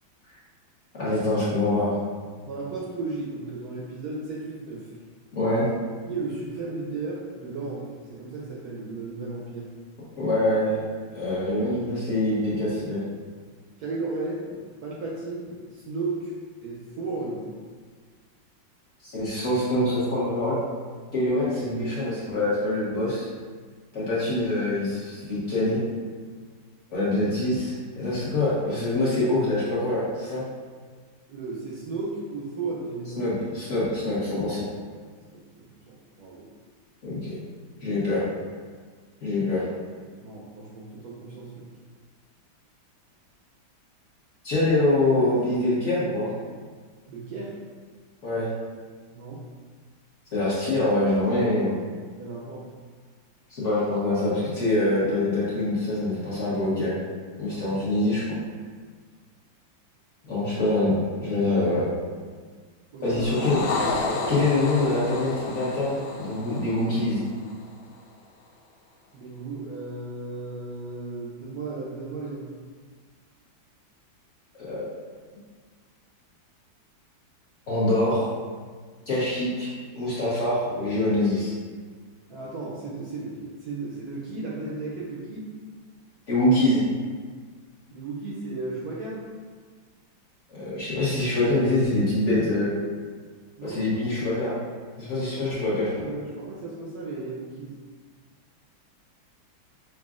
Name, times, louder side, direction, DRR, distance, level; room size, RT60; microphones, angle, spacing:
voice 1, 1.0-2.0 5.3-5.7 10.2-10.8 11.1-13.0 19.0-20.6 21.1-23.3 23.9-25.8 26.9-30.4 33.2-34.7 37.0-37.3 37.8-38.2 39.2-39.7 44.4-46.3 48.2-48.5 50.3-51.7 53.5-56.9 57.4-58.4 60.2-61.9 63.0-63.8 64.3-67.2 74.6-75.0 77.7-78.3 79.1-81.5 86.3-86.8 90.5-92.7 93.6-94.5 95.0-96.0, left 1 dB, 50° left, -9 dB, 1.0 m, -25 dB
voice 2, 2.4-4.9 6.0-9.7 13.8-16.3 16.6-17.5 31.3-33.4 35.3-36.5 40.2-41.7 47.1-47.6 49.1-49.4 52.2-52.7 57.5-57.6 60.3-60.4 62.9-63.3 63.5-64.5 69.1-72.5 82.3-85.5 87.9-89.2 93.6-93.8 95.2-97.8, right 3 dB, 75° right, -5 dB, 0.9 m, -35 dB
sound 1, 63.1-67.7, left 3 dB, 80° left, 1.3 m, -31 dB
5.8 x 2.3 x 2.4 m, 1.6 s
omnidirectional pair, 2.2 m